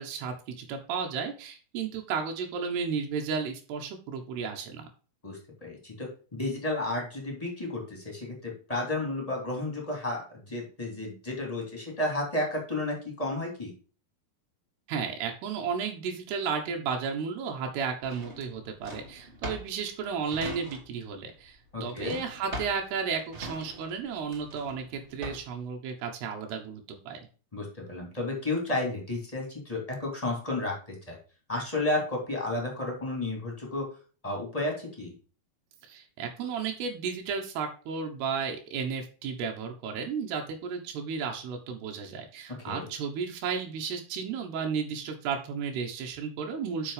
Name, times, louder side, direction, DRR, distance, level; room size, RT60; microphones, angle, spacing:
voice 1, 0.0-4.9 14.9-27.3 35.9-46.9, right 6 dB, 90° right, 2 dB, 3.3 m, -33 dB
voice 2, 5.2-13.7 21.7-22.2 27.5-30.7 31.1-31.2 31.5-33.9 34.2-35.1 42.6-42.9, left 2 dB, 10° left, 0 dB, 2.9 m, -32 dB
Drawer open or close, 18.0-21.1 21.4-25.6, right 1 dB, 70° right, 0.6 m, -41 dB
7.6 x 6.2 x 5.0 m, 0.37 s
omnidirectional pair, 4.5 m